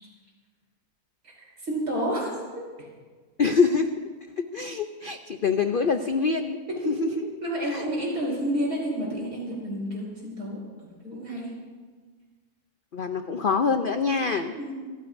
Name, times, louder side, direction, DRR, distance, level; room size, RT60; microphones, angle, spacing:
voice 1, 1.6-2.3 2.8-2.9 6.8-6.9 7.4-11.5 14.5-14.8, equal, 70° right, -3 dB, 5.6 m, -30 dB
voice 2, 3.4-4.0 4.5-6.6 6.9-7.1 7.7-7.8 12.9-14.5, left 5 dB, 75° left, 7 dB, 0.5 m, -25 dB
27.5 x 14.5 x 2.6 m, 1.5 s
omnidirectional pair, 1.7 m